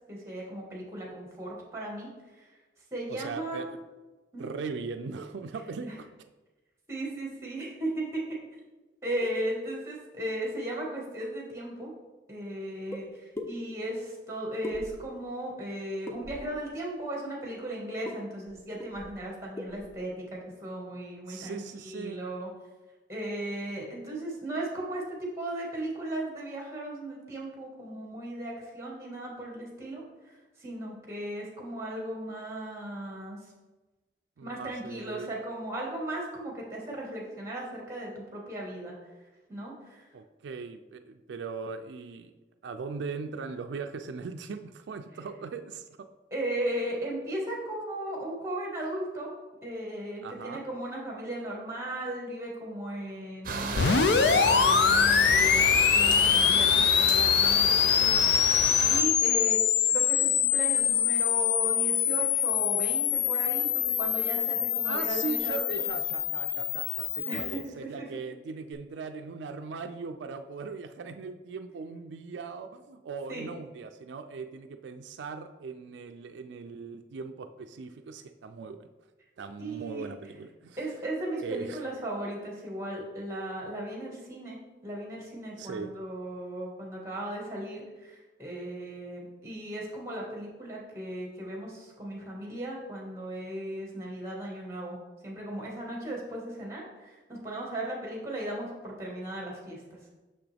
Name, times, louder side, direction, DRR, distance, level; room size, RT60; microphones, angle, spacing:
voice 1, 0.1-2.1 2.4-2.5 2.9-3.7 4.3-4.5 5.8-6.0 6.9-8.2 9.0-11.9 12.3-22.5 23.1-33.4 34.4-38.9 39.5-40.0 46.3-49.3 49.6-59.6 59.9-63.7 64.0-65.7 67.2-68.1 73.3-73.4 79.6-80.1 80.8-95.0 95.2-99.8, right 1 dB, 15° right, -2 dB, 1.7 m, -36 dB
voice 2, 3.1-3.8 4.4-6.1 21.3-22.2 34.4-35.3 40.1-42.3 42.6-45.9 50.2-50.6 64.8-78.9 79.4-80.8 81.4-81.8 85.6-85.9, right 4 dB, 85° right, 7 dB, 0.4 m, -39 dB
sound 1, 12.9-13.0 13.3-13.5 14.6-15.2 16.1-16.6 18.0-18.2 18.5-18.6 18.8-19.2 19.6-19.9, left 2 dB, 15° left, 0.6 m, -38 dB
sound 2, 53.4-59.0, right 4 dB, 50° right, 0.7 m, -32 dB
sound 3, 53.7-67.6, left 8 dB, 70° left, 0.4 m, -24 dB
6.4 x 5.9 x 3.4 m, 1.2 s
head